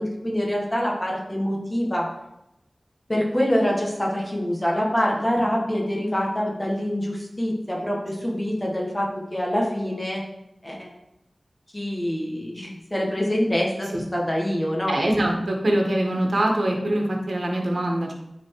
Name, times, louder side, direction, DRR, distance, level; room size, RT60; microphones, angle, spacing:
voice 1, 0.0-2.1 3.1-10.2 10.6-10.9 11.7-15.0, equal, 20° left, -2 dB, 1.6 m, -25 dB
voice 2, 14.9-18.1, right 1 dB, 60° right, 0 dB, 1.7 m, -23 dB
9.5 x 4.4 x 4.8 m, 0.89 s
wide cardioid pair, 80°, 0 cm